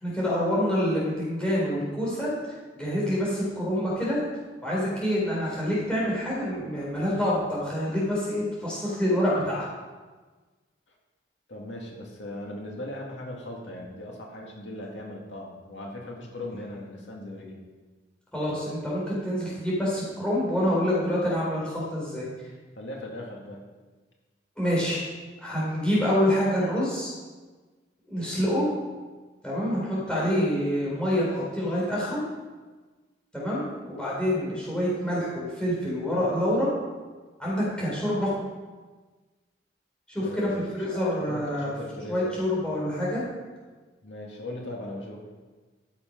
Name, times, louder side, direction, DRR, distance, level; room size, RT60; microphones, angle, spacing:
voice 1, 0.0-4.2 4.6-9.7 18.3-22.3 24.6-25.0 25.4-27.1 28.1-28.7 29.4-32.2 33.3-36.7 37.4-38.3 40.1-41.7 42.1-43.2, equal, 5° left, -7 dB, 4.0 m, -27 dB
voice 2, 11.5-17.6 22.8-23.6 28.2-28.3 40.2-42.5 44.0-45.2, left 1 dB, 85° left, -1 dB, 2.1 m, -38 dB
14.0 x 7.3 x 5.3 m, 1.3 s
head